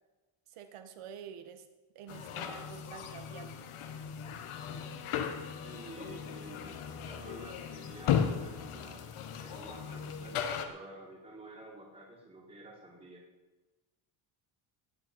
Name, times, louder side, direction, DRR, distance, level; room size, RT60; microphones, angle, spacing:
voice 1, 0.5-1.7 2.0-3.7, right 8 dB, 80° right, 8 dB, 1.9 m, -48 dB
sound 1, 2.1-10.7, left 8 dB, 75° left, 1.7 m, -36 dB
Bowed string instrument, 4.2-9.2, left 8 dB, 35° left, 2.8 m, -53 dB
voice 2, 5.6-13.2, right 1 dB, 15° right, -6 dB, 2.6 m, -50 dB
17.5 x 6.7 x 9.0 m, 1.2 s
cardioid pair, 175°, 50 cm